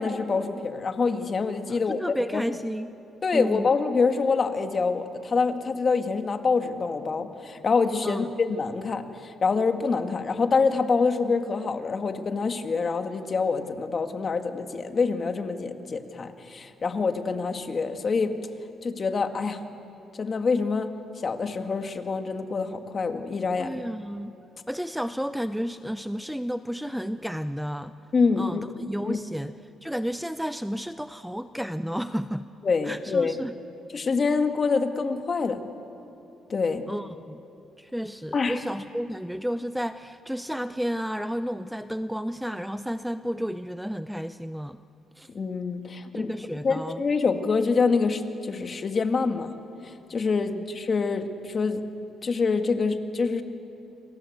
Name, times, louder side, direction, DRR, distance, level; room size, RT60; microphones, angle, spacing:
voice 1, 0.0-2.6 3.2-18.4 18.8-19.6 20.1-23.7 28.1-28.6 29.0-29.2 32.6-33.4 33.9-35.6 36.5-36.9 38.3-38.6 45.3-46.3 46.6-49.5 49.8-51.8 52.2-53.4, left 4 dB, 40° left, 6 dB, 2.2 m, -26 dB
voice 2, 1.7-3.0 3.3-3.7 8.0-8.3 23.6-24.3 24.7-27.9 28.4-28.6 28.9-32.4 32.8-33.5 36.9-37.4 37.8-44.8 45.2-45.3 46.1-47.0 50.5-50.6, equal, ahead, 11 dB, 0.6 m, -32 dB
29.0 x 25.0 x 8.1 m, 2.8 s
cardioid pair, 90°, 0 cm